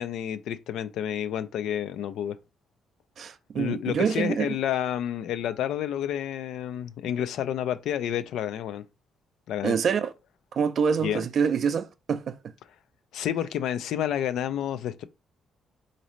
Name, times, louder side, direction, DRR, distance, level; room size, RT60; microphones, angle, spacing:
voice 1, 0.0-2.4 3.6-8.8 9.5-9.8 11.0-11.2 13.1-15.0, left 10 dB, 80° left, 0.3 m, -30 dB
voice 2, 3.2-4.6 9.6-10.1 10.5-12.4, right 6 dB, 60° right, 0.4 m, -26 dB
4.0 x 2.6 x 3.1 m
cardioid pair, 90°, 0 cm